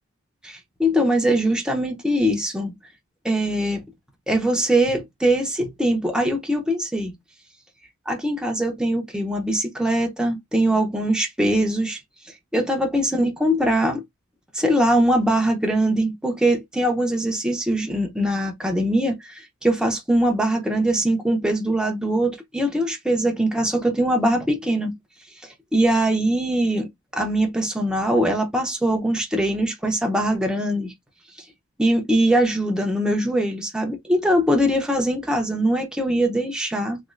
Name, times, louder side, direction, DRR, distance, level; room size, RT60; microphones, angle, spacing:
voice 1, 0.4-2.7 3.2-3.8 4.3-7.1 8.1-12.0 12.5-14.0 14.5-24.9 25.7-30.9 31.8-37.0, right 1 dB, 5° right, 0.6 m, -22 dB
3.1 x 2.9 x 2.4 m
head